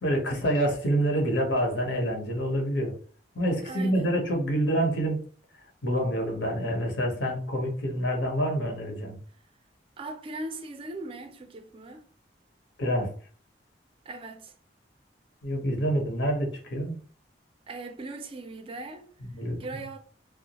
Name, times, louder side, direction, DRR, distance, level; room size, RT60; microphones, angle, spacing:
voice 1, 0.0-2.9 3.3-5.2 5.8-9.2 12.8-13.1 15.4-17.0 19.2-19.7, equal, 80° left, 0.9 m, -27 dB
voice 2, 3.7-4.1 10.0-12.1 14.1-14.5 17.7-20.0, right 2 dB, 30° right, 0.3 m, -39 dB
2.2 x 2.0 x 2.8 m
head